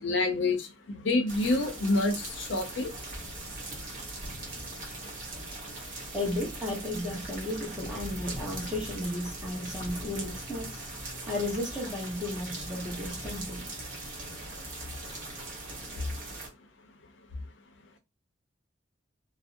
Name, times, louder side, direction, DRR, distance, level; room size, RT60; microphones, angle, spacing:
voice 1, 0.0-2.9, left 2 dB, 70° left, 0.6 m, -27 dB
sound 1, 1.3-16.5, right 2 dB, 45° right, 1.0 m, -40 dB
voice 2, 6.1-10.8 11.3-13.7, left 1 dB, 5° right, 0.8 m, -34 dB
2.5 x 2.0 x 2.4 m
head